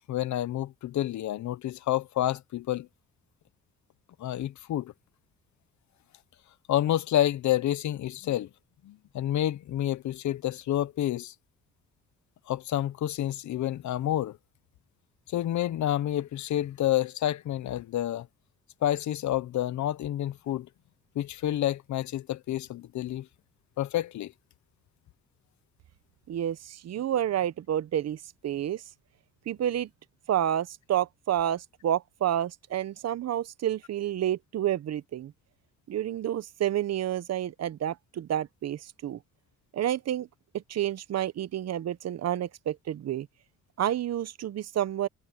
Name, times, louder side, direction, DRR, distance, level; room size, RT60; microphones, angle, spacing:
voice 1, 0.1-2.9 4.2-4.9 6.7-8.5 8.8-11.3 12.5-14.4 15.3-18.3 18.8-20.7 21.1-23.3 23.8-24.3, left 12 dB, 70° left, 1.0 m, -29 dB
voice 2, 26.3-28.8 29.5-29.9 30.3-35.3 35.9-39.2 39.7-40.3 40.5-43.3 43.8-45.1, right 11 dB, 60° right, 0.9 m, -29 dB
cardioid pair, 90°, 30 cm